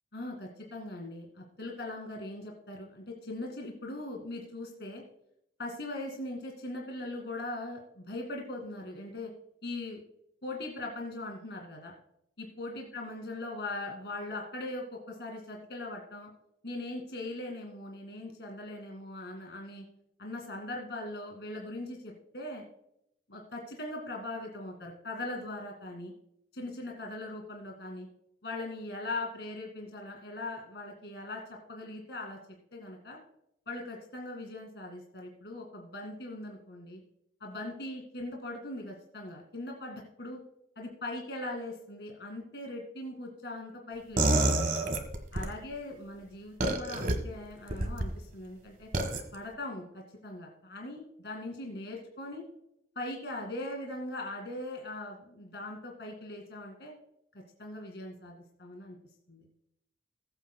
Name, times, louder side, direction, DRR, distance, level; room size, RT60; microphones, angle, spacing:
voice 1, 0.1-5.0 5.6-9.3 9.6-10.0 10.4-11.9 12.4-16.3 16.6-19.9 20.2-22.6 23.3-26.1 26.5-28.1 28.4-31.4 31.7-32.4 32.7-33.2 33.7-37.0 37.4-40.4 40.8-44.8 45.3-48.9 49.3-52.5 53.0-56.9 57.6-59.0 59.3-59.5, left 2 dB, 70° left, 1 dB, 2.2 m, -40 dB
sound 1, 44.2-45.5 46.6-47.1 47.7-48.1 48.9-49.2, right 2 dB, 45° right, 1.4 m, -27 dB
20.0 x 8.5 x 2.2 m, 0.75 s
head